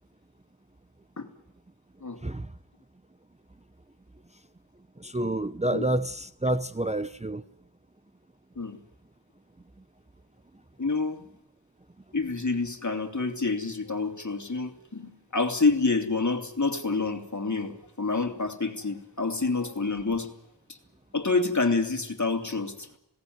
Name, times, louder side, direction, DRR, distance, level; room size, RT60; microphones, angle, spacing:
voice 1, 5.0-7.4, right 1 dB, 15° right, 0.7 m, -28 dB
voice 2, 10.8-11.2 12.1-20.3 20.7-20.8 21.1-22.9, left 3 dB, 40° left, 3.0 m, -28 dB
20.5 x 18.0 x 9.5 m
wide cardioid pair, 65°, 43 cm